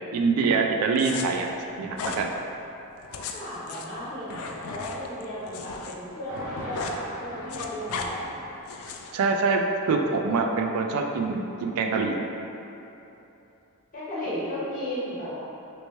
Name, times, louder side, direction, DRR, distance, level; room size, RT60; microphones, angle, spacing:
voice 1, 0.1-1.5 1.8-2.3 9.1-9.6 9.9-12.2, right 4 dB, 70° right, 4 dB, 0.3 m, -24 dB
sound 1, 1.0-1.3 1.9-2.2 3.0-5.9 6.2-7.0 7.3-8.1 8.7-9.1, left 5 dB, 70° left, 0.3 m, -36 dB
voice 2, 3.3-8.5 13.9-15.4, equal, 40° left, -11 dB, 1.2 m, -34 dB
sound 2, 6.3-9.0, left 1 dB, 55° right, 1.3 m, -41 dB
3.2 x 3.0 x 3.0 m, 3.0 s
head